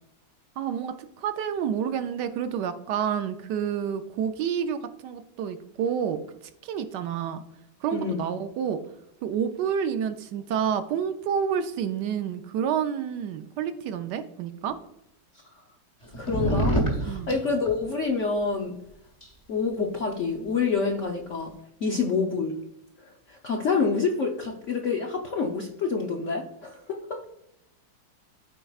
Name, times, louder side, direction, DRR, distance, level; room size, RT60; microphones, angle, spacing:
voice 1, 0.6-6.2 6.6-7.4 7.8-8.8 9.2-14.8 17.1-17.3 21.9-22.0, right 8 dB, 75° right, 9 dB, 1.1 m, -29 dB
voice 2, 7.9-8.2 16.2-16.8 17.0-18.8 19.5-21.5 21.8-22.6 23.0-27.2, left 4 dB, 70° left, 1 dB, 0.7 m, -27 dB
sound 1, 16.0-17.8 19.2-19.3, right 1 dB, 20° left, 1.0 m, -26 dB
13.0 x 4.5 x 2.3 m, 0.82 s
omnidirectional pair, 2.2 m